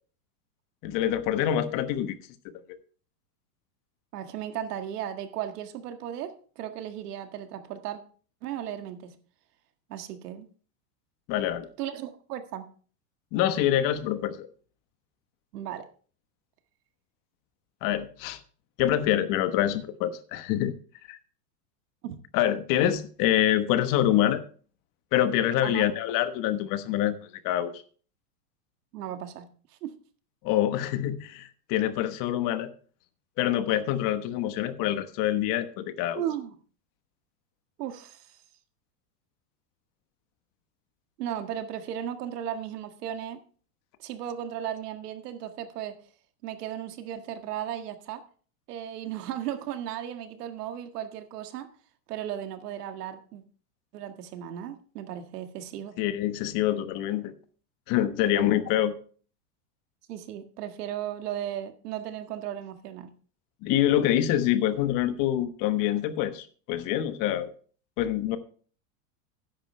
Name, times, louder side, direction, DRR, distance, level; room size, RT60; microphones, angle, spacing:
voice 1, 0.8-2.2 11.3-11.7 13.3-14.5 17.8-18.4 18.8-20.7 21.1-21.2 22.3-24.4 25.1-27.2 27.4-27.8 30.4-32.7 33.4-36.2 56.0-57.3 57.9-58.9 63.6-67.5 68.0-68.4, left 12 dB, 40° left, 10 dB, 1.2 m, -26 dB
voice 2, 4.1-8.0 8.4-9.2 9.9-10.5 11.8-12.6 15.5-15.8 22.0-22.2 25.6-25.8 28.9-29.5 29.8-30.0 36.2-36.5 37.8-38.4 41.2-43.4 44.0-46.0 46.4-48.2 48.7-51.7 52.1-53.4 53.9-56.0 58.2-58.5 60.1-63.1, right 10 dB, 75° right, 7 dB, 1.9 m, -36 dB
13.0 x 10.5 x 3.3 m, 0.43 s
supercardioid pair, 140°, 48 cm